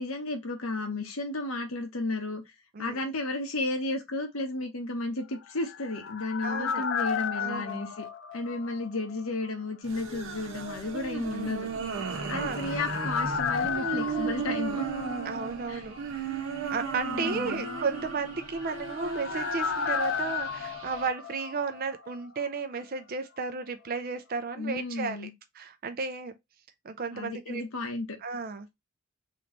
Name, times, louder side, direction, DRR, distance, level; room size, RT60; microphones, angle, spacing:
voice 1, 0.0-2.4 2.8-8.1 8.3-11.7 12.3-14.9 15.7-15.8 17.0-17.7 24.6-25.3 27.1-28.2, left 2 dB, 90° left, 1.2 m, -33 dB
sound 1, 5.3-9.2 9.4-9.5 11.9-15.7 15.9-16.0 18.3-22.1 22.4-22.5, left 7 dB, 60° left, 0.5 m, -34 dB
voice 2, 6.4-6.9 7.4-7.8 12.3-12.6 15.2-16.3 16.7-25.3 25.6-26.3 26.8-27.6 28.2-28.7, right 4 dB, 45° right, 0.5 m, -34 dB
sound 2, 9.8-21.1, right 4 dB, 70° right, 0.9 m, -35 dB
3.2 x 3.0 x 3.8 m
head